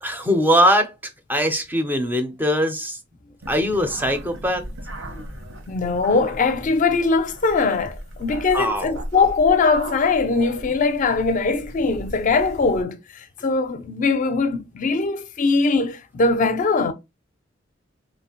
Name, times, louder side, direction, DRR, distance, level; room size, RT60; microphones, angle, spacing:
voice 1, 0.0-0.9 1.3-3.0 3.5-4.7 8.5-9.0, equal, 10° right, 0.5 m, -21 dB
sound 1, 3.4-12.8, right 1 dB, 85° right, 1.0 m, -38 dB
voice 2, 5.7-13.0 13.4-16.9, left 4 dB, 40° left, 0.4 m, -21 dB
3.0 x 2.0 x 2.9 m
head